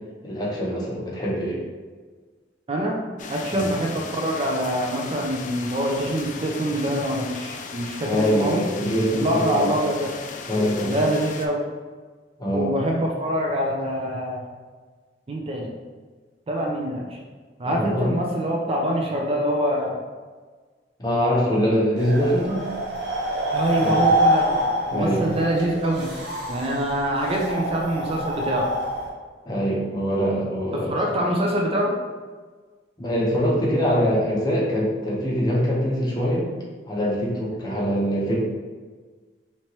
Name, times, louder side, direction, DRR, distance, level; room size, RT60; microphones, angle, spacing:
voice 1, 0.2-1.6 3.5-3.7 8.0-9.7 10.5-11.0 12.4-12.7 17.6-18.1 21.0-22.7 23.8-24.1 24.9-25.3 29.4-31.1 33.0-36.5 36.9-38.3, equal, 25° left, -6 dB, 0.9 m, -23 dB
voice 2, 2.7-3.0 3.3-8.6 9.1-10.1 10.9-11.6 12.5-14.4 15.3-15.7 16.5-17.2 17.6-20.0 23.5-24.5 24.9-26.1 26.5-28.7 30.7-31.9, right 1 dB, 35° right, -1 dB, 0.4 m, -25 dB
sound 1, 3.2-11.5, left 5 dB, 45° left, 0.4 m, -37 dB
Vent polaire, 22.0-29.1, right 1 dB, 70° right, 1.3 m, -25 dB
4.4 x 2.9 x 3.0 m, 1.4 s
head